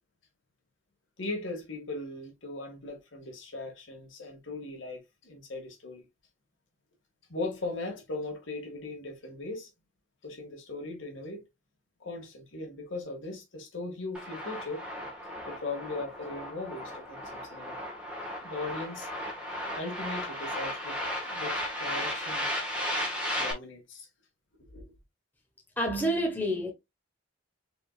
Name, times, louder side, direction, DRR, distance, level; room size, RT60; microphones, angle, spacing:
voice 1, 1.2-6.1 7.3-9.7 10.2-11.4 12.0-14.8 15.4-17.8 18.4-19.1 19.8-22.6 23.4-24.1 24.7-24.8, left 2 dB, 80° left, 2.0 m, -39 dB
sound 1, 14.1-23.5, left 1 dB, 5° right, 1.4 m, -35 dB
voice 2, 25.8-26.7, equal, 10° left, 1.2 m, -28 dB
5.0 x 3.9 x 2.4 m
head